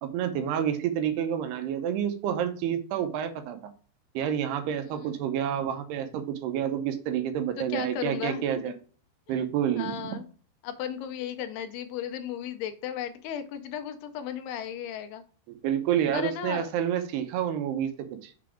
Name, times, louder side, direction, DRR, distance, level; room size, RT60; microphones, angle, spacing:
voice 1, 0.0-3.6 4.1-8.7 9.3-10.1 15.5-17.9 18.2-18.3, right 9 dB, 80° right, 8 dB, 2.7 m, -29 dB
voice 2, 4.7-5.1 7.6-8.6 9.8-10.2 10.6-15.2 16.1-16.7, left 9 dB, 80° left, 9 dB, 2.6 m, -35 dB
6.8 x 4.0 x 4.8 m, 0.40 s
omnidirectional pair, 4.8 m